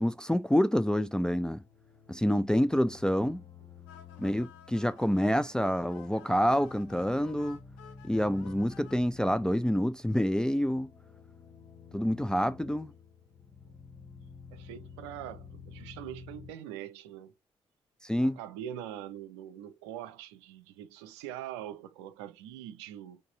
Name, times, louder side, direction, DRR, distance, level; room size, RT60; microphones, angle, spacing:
voice 1, 0.0-1.6 2.1-3.4 4.2-7.6 8.0-10.9 11.9-12.9 18.0-18.4, equal, 5° left, 0.4 m, -27 dB
sound 1, 1.5-16.5, left 5 dB, 25° left, 1.2 m, -51 dB
sound 2, 3.9-8.9, left 8 dB, 70° left, 0.7 m, -54 dB
voice 2, 14.5-17.3 18.2-23.2, right 11 dB, 70° right, 0.5 m, -43 dB
4.1 x 3.4 x 3.8 m
figure-of-eight pair, 40°, 15 cm